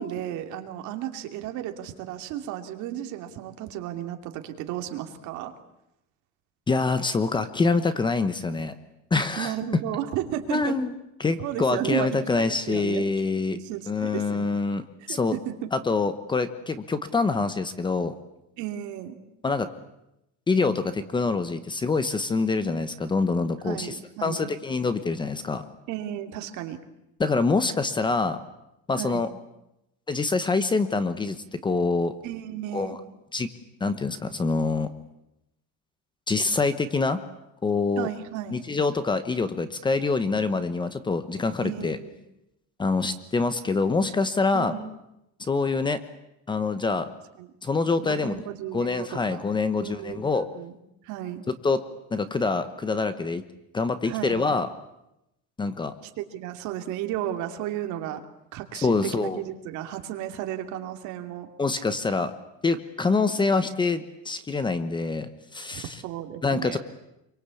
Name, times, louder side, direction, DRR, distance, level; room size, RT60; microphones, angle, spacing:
voice 1, 0.0-5.5 9.4-10.8 11.4-12.1 12.4-13.1 13.5-14.5 15.1-15.7 18.6-19.2 23.6-24.5 25.9-26.8 29.0-29.3 32.2-33.0 38.0-38.7 41.6-42.1 44.5-44.9 47.4-47.5 48.0-49.4 49.8-50.7 51.0-51.4 54.0-54.5 56.0-58.2 58.5-61.5 65.7-66.8, right 12 dB, 60° right, 6 dB, 2.8 m, -34 dB
voice 2, 6.7-8.7 9.1-9.5 10.5-10.9 11.2-13.6 13.9-15.4 15.7-18.1 19.4-19.7 20.5-24.0 24.2-25.6 27.2-28.4 28.9-29.3 30.1-32.1 32.7-33.0 33.3-33.5 33.8-34.9 36.3-37.2 37.6-38.1 38.5-42.0 42.8-44.7 45.4-46.0 46.5-47.1 47.6-48.4 48.7-50.5 51.6-51.8 52.1-53.4 53.7-54.7 55.6-55.9 58.7-59.4 61.6-62.3 62.6-66.0 66.4-66.8, left 4 dB, 15° left, 12 dB, 1.0 m, -25 dB
26.5 x 24.0 x 8.5 m, 0.88 s
cardioid pair, 180°, 32 cm